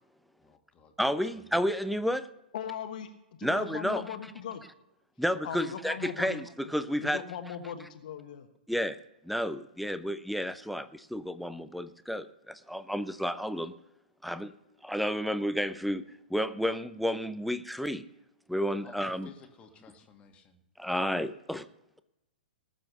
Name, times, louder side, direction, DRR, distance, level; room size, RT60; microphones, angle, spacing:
voice 1, 0.4-0.9 1.2-1.5 18.8-20.6, left 6 dB, 20° left, 4 dB, 1.9 m, -56 dB
voice 2, 1.0-2.3 3.4-4.0 5.2-7.2 8.7-9.0 9.2-13.7 14.2-14.5 14.8-16.0 16.3-18.0 18.5-19.3 20.8-21.7, equal, ahead, 13 dB, 0.6 m, -31 dB
voice 3, 2.5-3.1 3.4-4.6 5.4-6.4 7.0-8.5, left 8 dB, 55° left, 7 dB, 1.3 m, -38 dB
19.0 x 7.1 x 6.8 m, 0.92 s
figure-of-eight pair, 110°, 5 cm